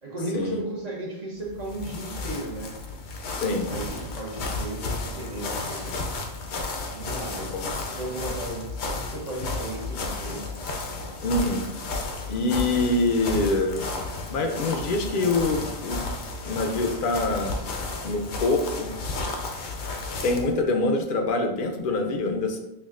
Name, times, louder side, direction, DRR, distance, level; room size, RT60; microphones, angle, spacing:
voice 1, 0.0-2.7 3.4-6.5 6.9-7.5 7.9-10.4, right 1 dB, 40° right, -4 dB, 1.0 m, -35 dB
sound 1, 1.4-20.5, left 3 dB, 85° left, 0.9 m, -33 dB
voice 2, 3.3-3.7 7.5-7.7 11.2-11.6 12.3-13.8 14.3-16.0 16.4-17.6 18.0-18.9 20.2-22.6, left 2 dB, 60° left, 4 dB, 0.6 m, -25 dB
5.8 x 2.3 x 2.4 m, 0.98 s
omnidirectional pair, 1.1 m